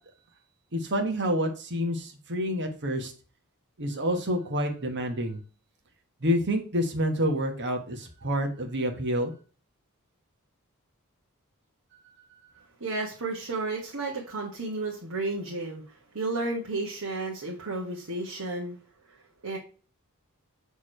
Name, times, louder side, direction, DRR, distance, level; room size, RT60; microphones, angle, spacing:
voice 1, 0.7-3.1 3.8-5.4 6.2-9.3, equal, 55° right, 4 dB, 1.4 m, -28 dB
voice 2, 12.8-15.8 16.1-18.8 19.1-19.2 19.4-19.6, right 2 dB, 70° right, -3 dB, 1.5 m, -32 dB
6.6 x 3.6 x 4.5 m, 0.37 s
head